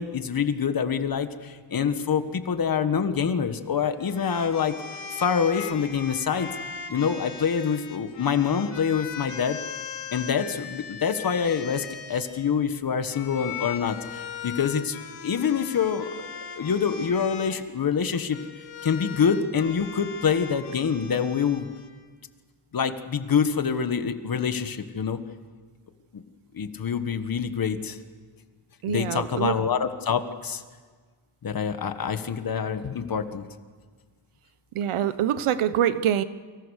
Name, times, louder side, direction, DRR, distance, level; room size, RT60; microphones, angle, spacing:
voice 1, 0.0-4.7 5.2-6.5 6.9-9.6 10.1-16.1 16.5-18.4 18.8-21.7 22.7-25.2 26.1-26.2 26.5-28.0 28.8-30.6 31.4-33.4, left 7 dB, 45° left, 9 dB, 1.7 m, -26 dB
sound 1, 4.0-12.5 13.1-17.5 18.3-21.9, left 7 dB, 80° left, 4.2 m, -39 dB
voice 2, 28.8-29.6 34.7-36.2, right 10 dB, 80° right, 13 dB, 1.2 m, -24 dB
30.0 x 24.0 x 6.6 m, 1.5 s
cardioid pair, 130°, 49 cm